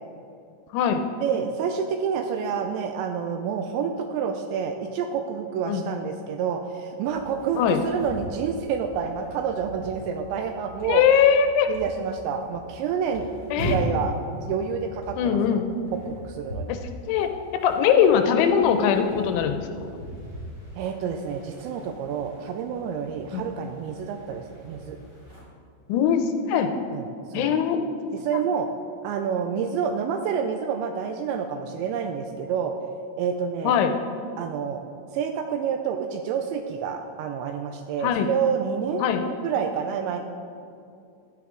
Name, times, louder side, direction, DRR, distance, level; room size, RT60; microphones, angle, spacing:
voice 1, 1.2-11.0 11.7-15.6 16.1-16.7 20.8-25.0 26.9-27.5 28.1-28.7 29.0-32.7 33.2-33.8 34.4-34.8 35.1-40.2, right 7 dB, 85° right, 6 dB, 2.6 m, -28 dB
sound 1, 7.0-25.4, equal, 30° right, 2.6 m, -39 dB
voice 2, 10.8-11.7 13.5-13.8 15.2-15.7 16.7-16.8 17.1-19.6 23.3-23.4 25.9-26.7 27.3-27.8 28.3-28.4 33.6-33.9 38.0-38.3 39.0-39.3, left 8 dB, 80° left, 7 dB, 2.8 m, -21 dB
12.5 x 9.7 x 3.6 m, 2.4 s
omnidirectional pair, 5.6 m